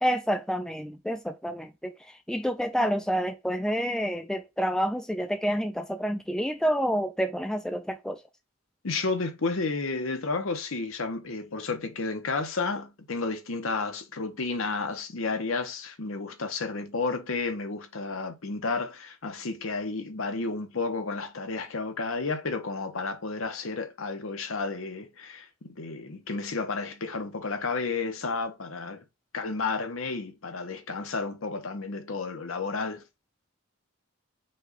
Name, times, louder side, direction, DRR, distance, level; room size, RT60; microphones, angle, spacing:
voice 1, 0.0-8.2, equal, 5° left, 0.3 m, -28 dB
voice 2, 8.8-29.0 29.3-33.0, left 3 dB, 75° left, 0.9 m, -32 dB
5.3 x 2.3 x 3.9 m
head